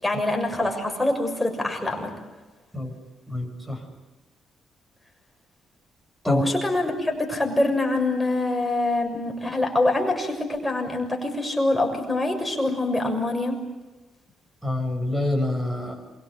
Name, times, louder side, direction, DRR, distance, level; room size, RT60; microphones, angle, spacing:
voice 1, 0.0-2.1 6.2-13.6, left 2 dB, 10° left, 2 dB, 6.8 m, -25 dB
voice 2, 3.3-3.8 6.2-6.4 14.6-16.0, left 1 dB, 10° right, 5 dB, 7.5 m, -26 dB
28.0 x 24.0 x 8.4 m, 1.2 s
cardioid pair, 90°, 0 cm